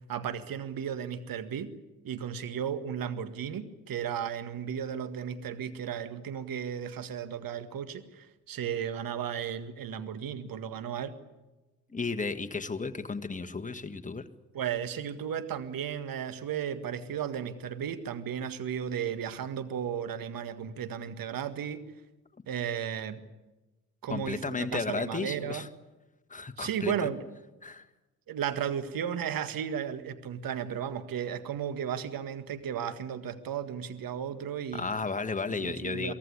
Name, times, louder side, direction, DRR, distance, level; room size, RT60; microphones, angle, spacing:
voice 1, 0.0-1.7 2.0-11.2 14.5-21.8 22.5-23.2 24.0-25.7 26.6-27.2 28.3-35.0 35.6-36.1, right 8 dB, 50° right, 11 dB, 1.8 m, -34 dB
voice 2, 11.9-14.3 24.1-25.7 26.3-27.1 27.6-27.9 34.7-36.1, left 4 dB, 15° left, 7 dB, 1.6 m, -33 dB
23.5 x 16.0 x 9.8 m, 1.1 s
figure-of-eight pair, 45°, 45 cm